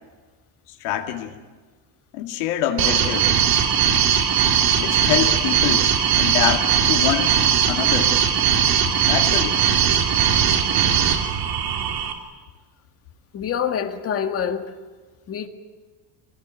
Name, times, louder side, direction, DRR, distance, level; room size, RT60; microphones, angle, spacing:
voice 1, 0.8-1.4 2.1-3.3 4.8-5.9 6.2-7.4 7.7-8.1 9.0-9.6, left 11 dB, 90° left, 4 dB, 2.4 m, -25 dB
sound 1, 2.8-12.1, right 8 dB, 55° right, 3.2 m, -19 dB
voice 2, 13.3-14.7 15.3-15.5, left 8 dB, 30° left, 7 dB, 1.9 m, -26 dB
26.5 x 19.0 x 9.3 m, 1.4 s
cardioid pair, 160°, 44 cm